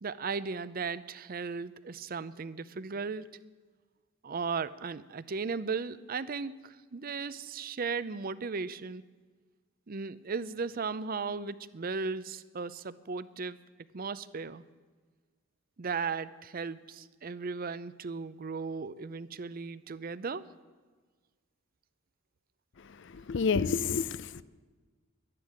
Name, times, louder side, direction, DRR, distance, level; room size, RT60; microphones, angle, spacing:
voice 1, 0.0-3.3 4.2-9.0 9.9-13.6 13.9-14.6 15.8-20.4, right 5 dB, 50° right, 16 dB, 0.6 m, -36 dB
voice 2, 23.0-24.4, left 5 dB, 65° left, 17 dB, 0.5 m, -29 dB
11.5 x 11.0 x 10.0 m, 1.4 s
head